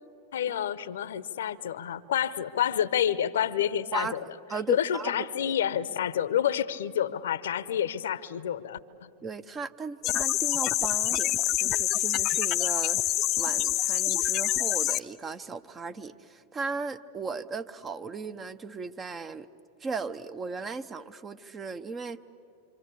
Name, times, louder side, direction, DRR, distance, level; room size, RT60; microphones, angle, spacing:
voice 1, 0.3-4.2 4.7-9.1, left 10 dB, 70° left, 17 dB, 0.8 m, -29 dB
voice 2, 4.5-5.5 9.2-19.5 19.8-22.2, right 4 dB, 25° right, 11 dB, 0.9 m, -37 dB
sound 1, 10.0-15.0, left 14 dB, 40° left, 0.6 m, -26 dB
26.5 x 26.5 x 8.4 m, 2.6 s
figure-of-eight pair, 95°, 0 cm